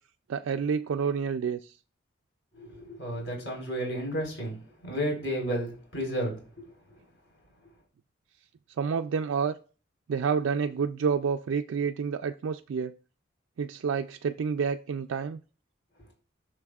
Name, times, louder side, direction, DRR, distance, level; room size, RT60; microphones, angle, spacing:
voice 1, 0.3-1.7 8.8-9.6 10.1-12.9 13.6-15.4, right 6 dB, 80° right, 0.4 m, -29 dB
voice 2, 2.6-6.7, equal, 65° left, 4.2 m, -32 dB
12.0 x 6.6 x 2.4 m
head